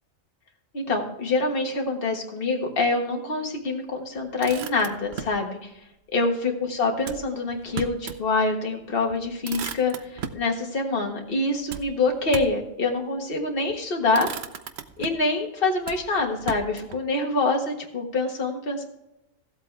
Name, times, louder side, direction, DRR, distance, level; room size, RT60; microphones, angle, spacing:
voice 1, 0.7-5.7 6.1-14.3 15.0-18.8, left 3 dB, 45° left, 1 dB, 1.7 m, -25 dB
Motor vehicle (road), 4.2-5.4 7.0-8.3 8.7-8.8 9.1-10.5 11.7-12.7 13.5-13.8 14.1-15.3 15.8-17.0, right 7 dB, 60° right, 0.9 m, -37 dB
15.0 x 8.1 x 3.3 m, 0.88 s
omnidirectional pair, 1.3 m